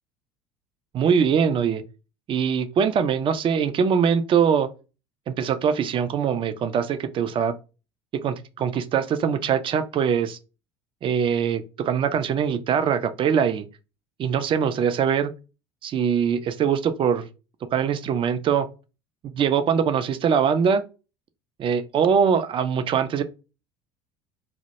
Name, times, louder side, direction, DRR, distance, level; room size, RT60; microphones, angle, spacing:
voice 1, 0.9-1.8 2.3-4.7 5.3-7.5 8.2-10.4 11.0-13.7 14.2-15.3 15.8-17.3 17.7-18.7 19.3-20.8 21.6-23.2, right 7 dB, 35° right, 0.4 m, -22 dB
2.1 x 2.1 x 2.7 m
hypercardioid pair, 70°, 14 cm